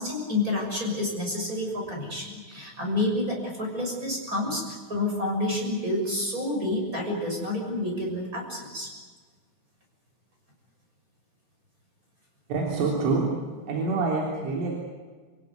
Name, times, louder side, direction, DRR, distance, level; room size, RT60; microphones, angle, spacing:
voice 1, 0.0-8.9, left 1 dB, 15° right, 0 dB, 6.5 m, -29 dB
voice 2, 12.5-13.3 13.7-14.7, right 3 dB, 85° right, -1 dB, 6.0 m, -26 dB
27.5 x 17.0 x 9.6 m, 1.4 s
omnidirectional pair, 5.5 m